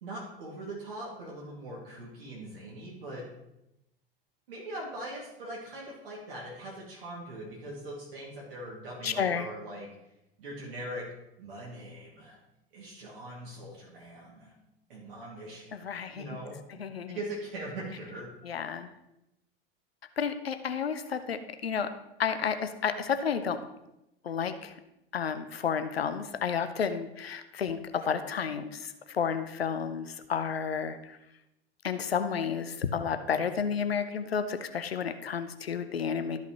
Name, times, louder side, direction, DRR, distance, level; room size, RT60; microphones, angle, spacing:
voice 1, 0.0-3.3 4.5-10.1 10.4-11.1 11.4-12.4 12.7-14.6 14.9-16.6 17.1-18.3, right 1 dB, 65° right, -4 dB, 2.2 m, -41 dB
voice 2, 9.0-9.5 15.7-16.3 16.8-17.2 18.4-18.9 20.2-21.9 22.2-23.6 24.2-24.7 25.1-31.2 31.8-36.4, left 7 dB, 80° left, 10 dB, 0.6 m, -31 dB
13.0 x 5.7 x 3.0 m, 0.88 s
figure-of-eight pair, 80°, 30 cm